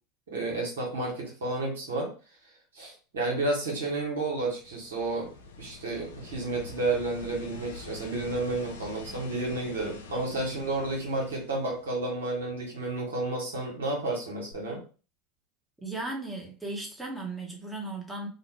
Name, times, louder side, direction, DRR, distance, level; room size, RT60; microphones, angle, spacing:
voice 1, 0.3-2.1 2.7-5.3 5.6-14.8, right 2 dB, 75° right, -2 dB, 1.1 m, -31 dB
sound 1, 3.9-12.4 14.5-14.6, left 4 dB, 75° left, 0.4 m, -46 dB
voice 2, 15.8-18.3, right 2 dB, 5° right, -2 dB, 0.9 m, -36 dB
2.9 x 2.1 x 2.9 m, 0.36 s
figure-of-eight pair, 75°, 0 cm